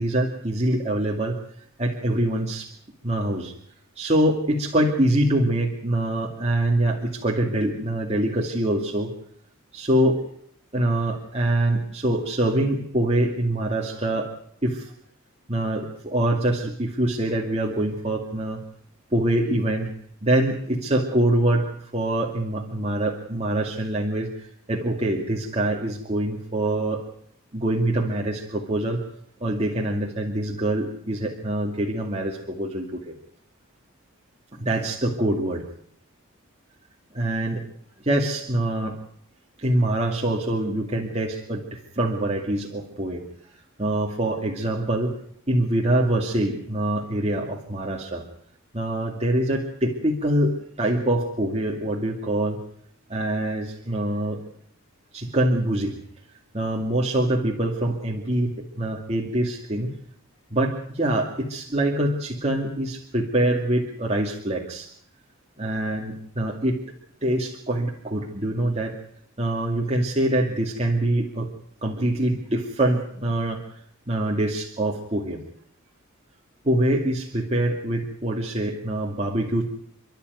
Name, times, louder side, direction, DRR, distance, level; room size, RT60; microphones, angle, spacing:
voice 1, 0.0-1.4 1.8-2.7 3.0-3.5 4.0-9.1 9.7-10.2 10.7-14.3 14.6-14.9 15.5-18.6 19.1-19.9 20.2-27.0 27.5-29.0 29.4-33.1 34.6-35.6 37.1-37.6 38.0-39.0 39.6-43.2 43.8-45.1 45.5-48.2 48.7-52.6 53.1-54.4 55.1-56.0 56.5-59.9 60.5-64.9 65.6-66.8 67.2-69.0 69.4-71.5 71.8-73.8 74.1-75.4 76.6-79.7, right 1 dB, 30° right, -1 dB, 2.4 m, -24 dB
29.5 x 12.0 x 9.4 m, 0.68 s
head